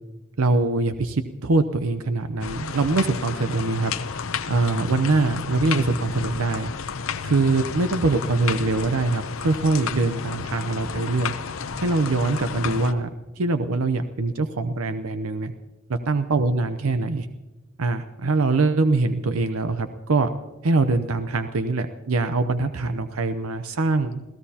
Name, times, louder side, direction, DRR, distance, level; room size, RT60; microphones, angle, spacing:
voice 1, 0.4-3.9 4.5-6.7 7.2-11.3 11.8-13.1 13.4-15.5 16.1-17.3 17.8-20.3 20.6-24.2, right 3 dB, 85° right, 9 dB, 0.7 m, -23 dB
sound 1, 2.4-12.9, left 6 dB, 75° left, 0.7 m, -31 dB
29.0 x 16.0 x 2.9 m, 1.1 s
head